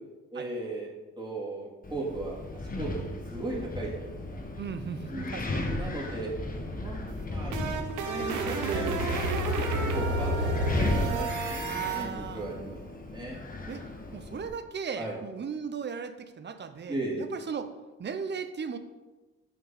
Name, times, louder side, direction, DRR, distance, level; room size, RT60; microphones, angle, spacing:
voice 1, 0.3-0.9 1.2-2.4 2.8-2.9 3.3-4.4 5.1-6.3 6.7-11.6 11.9-12.8 13.1-13.4 15.0-15.2 16.9-17.2, right 2 dB, 15° right, -4 dB, 2.6 m, -37 dB
Wind, 1.8-14.5, left 2 dB, 30° left, 1.1 m, -35 dB
voice 2, 4.6-5.7 11.6-12.5 13.7-13.8 14.1-17.7 18.0-18.8, right 6 dB, 35° right, 10 dB, 0.7 m, -37 dB
sound 1, 7.1-12.0, right 2 dB, 85° right, 0.9 m, -30 dB
6.4 x 4.7 x 5.7 m, 1.2 s
cardioid pair, 90°, 30 cm